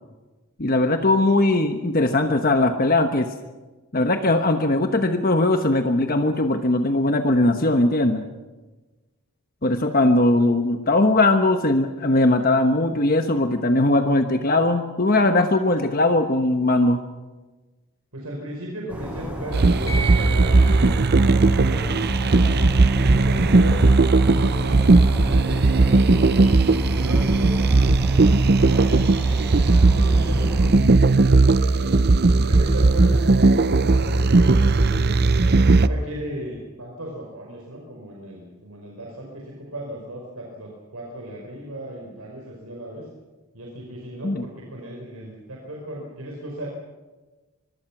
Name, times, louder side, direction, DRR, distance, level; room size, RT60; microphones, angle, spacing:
voice 1, 0.6-3.3 3.9-8.2 9.6-17.0 44.2-44.4, left 2 dB, 40° left, 6 dB, 1.2 m, -20 dB
voice 2, 9.6-10.2 18.1-22.6 23.0-26.4 26.8-32.0 32.4-35.2 35.7-43.1 43.5-46.7, right 1 dB, 85° right, -1 dB, 5.0 m, -36 dB
sound 1, 18.9-30.7, equal, 5° right, 7.2 m, -33 dB
sound 2, 19.5-35.9, right 3 dB, 45° right, 0.7 m, -17 dB
sound 3, 19.9-28.9, right 5 dB, 15° left, 3.3 m, -40 dB
24.5 x 23.0 x 6.1 m, 1.2 s
head